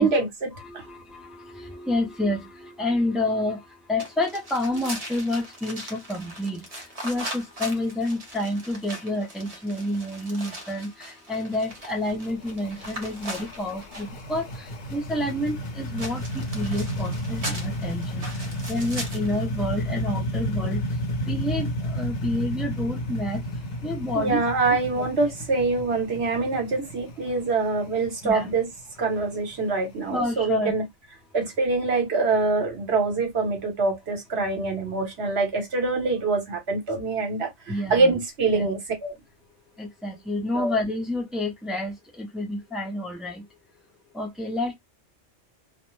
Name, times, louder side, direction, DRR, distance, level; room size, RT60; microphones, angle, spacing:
voice 1, 0.0-0.8 24.1-28.7 29.0-30.8 31.3-39.1 40.5-40.8, right 3 dB, 60° right, 1.2 m, -25 dB
voice 2, 0.6-25.1 28.2-28.5 30.1-30.7 37.7-38.2 38.5-38.7 39.8-43.5 44.1-44.8, left 1 dB, ahead, 0.3 m, -29 dB
sound 1, 4.0-14.2 16.0-19.4, right 1 dB, 35° right, 0.7 m, -39 dB
sound 2, 11.3-30.1, equal, 55° left, 0.9 m, -32 dB
2.4 x 2.1 x 3.1 m
omnidirectional pair, 1.2 m